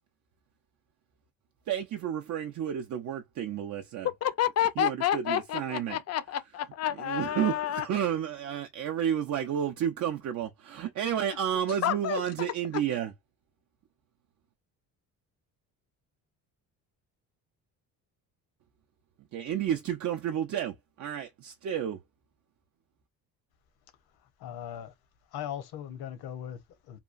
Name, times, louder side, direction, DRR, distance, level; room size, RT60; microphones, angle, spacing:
voice 1, 1.7-4.1 4.8-6.0 7.0-13.1 19.3-22.0, right 9 dB, 50° right, 0.5 m, -31 dB
voice 2, 4.2-7.9 11.8-12.2, left 11 dB, 40° left, 0.5 m, -29 dB
voice 3, 24.2-24.9 25.3-27.0, left 10 dB, 70° left, 0.9 m, -39 dB
2.9 x 2.3 x 2.4 m
cardioid pair, 95°, 38 cm